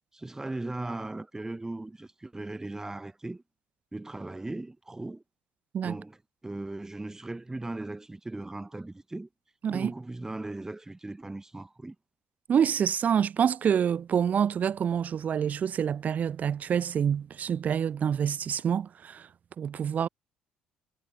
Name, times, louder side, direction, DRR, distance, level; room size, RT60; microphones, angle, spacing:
voice 1, 0.1-3.4 3.9-5.2 5.8-6.2 6.4-9.3 9.7-11.9, right 2 dB, 10° right, 1.2 m, -38 dB
voice 2, 12.5-19.3 19.6-20.1, right 8 dB, 40° right, 0.8 m, -27 dB
figure-of-eight pair, 50°, 4 cm